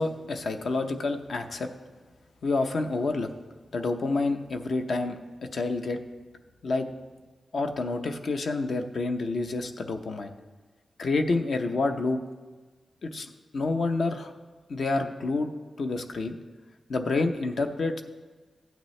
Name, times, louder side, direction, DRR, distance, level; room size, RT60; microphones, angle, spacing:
voice 1, 0.0-1.7 2.4-3.3 3.7-5.2 5.5-6.0 6.6-6.9 7.5-10.3 11.0-12.2 13.0-13.3 13.5-14.3 14.7-15.5 15.8-16.3 16.9-18.0, left 3 dB, 55° left, 6 dB, 0.7 m, -28 dB
15.5 x 9.1 x 3.2 m, 1.4 s
wide cardioid pair, 180°, 0 cm